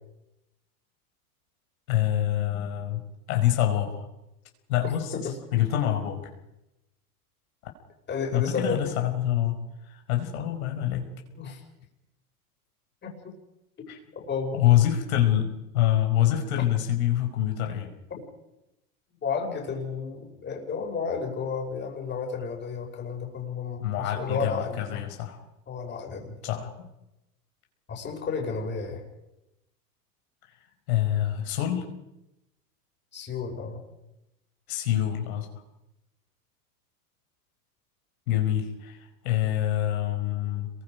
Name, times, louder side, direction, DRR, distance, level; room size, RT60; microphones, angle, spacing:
voice 1, 1.9-4.0 4.7-5.1 5.5-6.3 8.3-9.6 9.9-11.0 13.9-14.0 14.5-17.9 23.8-25.4 26.4-26.9 30.9-31.8 34.7-35.5 38.3-40.7, left 12 dB, 70° left, 3 dB, 5.0 m, -26 dB
voice 2, 8.1-8.9 11.3-11.6 13.0-13.3 13.8-13.9 14.2-14.6 16.6-16.7 19.2-25.0 25.7-26.7 27.9-29.0 33.1-33.8, left 5 dB, 25° left, 1 dB, 5.7 m, -32 dB
28.0 x 22.5 x 5.3 m, 0.90 s
supercardioid pair, 125°, 45 cm